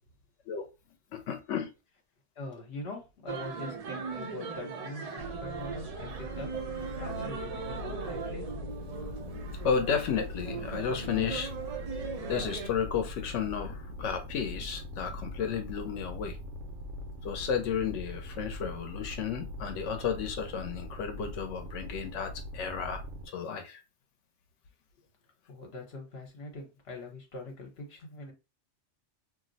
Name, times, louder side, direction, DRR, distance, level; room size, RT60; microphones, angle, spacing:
voice 1, 1.1-1.7 8.9-11.5 12.3-16.4 17.2-23.0 23.3-23.8, left 7 dB, 85° left, 0.9 m, -33 dB
voice 2, 2.4-6.5 6.9-8.5 25.5-28.3, left 2 dB, 60° left, 1.2 m, -43 dB
sound 1, 3.3-12.7, right 5 dB, 50° right, 0.5 m, -39 dB
sound 2, 5.2-23.3, left 1 dB, 80° right, 1.0 m, -42 dB
2.6 x 2.0 x 3.8 m
omnidirectional pair, 1.2 m